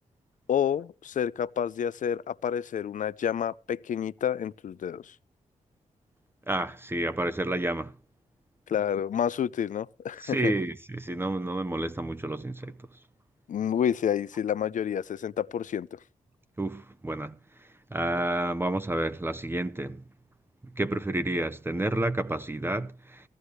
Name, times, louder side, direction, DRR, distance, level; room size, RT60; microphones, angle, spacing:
voice 1, 0.5-5.1 8.7-10.5 13.5-16.0, left 9 dB, 70° left, 0.5 m, -29 dB
voice 2, 6.5-7.9 10.2-12.7 16.6-20.0 20.7-23.3, right 1 dB, 15° right, 0.8 m, -30 dB
16.0 x 14.5 x 3.2 m
wide cardioid pair, 100°, 14 cm